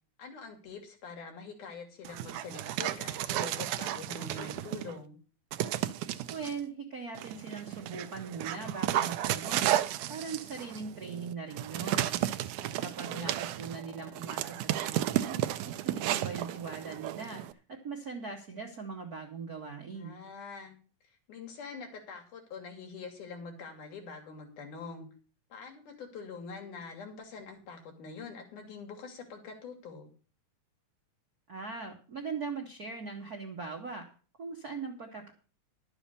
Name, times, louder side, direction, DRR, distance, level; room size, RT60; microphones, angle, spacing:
voice 1, 0.2-5.2 13.0-13.4 20.0-20.8 21.3-25.1 25.5-30.1, left 4 dB, 75° left, 3 dB, 3.9 m, -45 dB
Dog, 2.0-4.9 5.5-6.5 7.2-17.5, right 13 dB, 80° right, 2.1 m, -33 dB
voice 2, 6.3-9.8 10.1-15.4 15.6-20.2 31.5-34.0 34.4-35.3, right 5 dB, 55° right, 1 dB, 1.1 m, -40 dB
11.5 x 7.1 x 6.7 m, 0.38 s
omnidirectional pair, 3.6 m